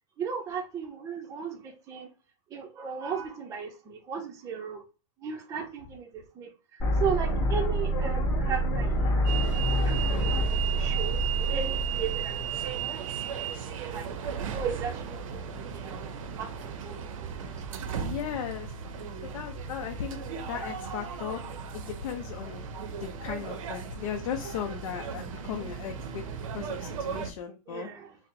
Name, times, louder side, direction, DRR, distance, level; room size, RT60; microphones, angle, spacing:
voice 1, 0.2-2.1 2.5-4.8 5.2-6.5 7.0-9.4 9.8-10.4 10.8-13.0 13.8-14.1 14.5-16.1 16.4-17.8 27.7-28.2, right 6 dB, 15° right, 0.5 m, -36 dB
sound 1, 6.8-12.8, right 1 dB, 20° left, 1.4 m, -27 dB
sound 2, 9.2-27.3, right 7 dB, 65° right, 0.6 m, -36 dB
voice 2, 18.0-18.7 19.2-20.2 20.5-21.4 21.7-22.7 23.0-27.9, left 8 dB, 65° left, 0.6 m, -37 dB
4.2 x 2.0 x 2.6 m
supercardioid pair, 155°, 18 cm